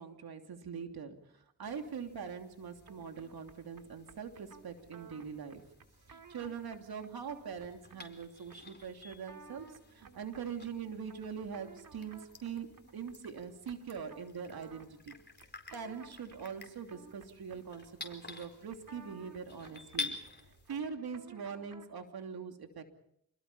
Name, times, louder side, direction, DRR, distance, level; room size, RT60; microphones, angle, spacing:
voice 1, 0.0-5.6 6.1-15.1 15.7-22.8, right 6 dB, 75° right, 5 dB, 3.0 m, -43 dB
sound 1, 1.6-20.8, left 2 dB, 30° left, 4.7 m, -50 dB
sound 2, 2.9-22.1, right 5 dB, 60° right, 2.7 m, -57 dB
28.0 x 21.5 x 5.6 m, 0.74 s
cardioid pair, 55°, 38 cm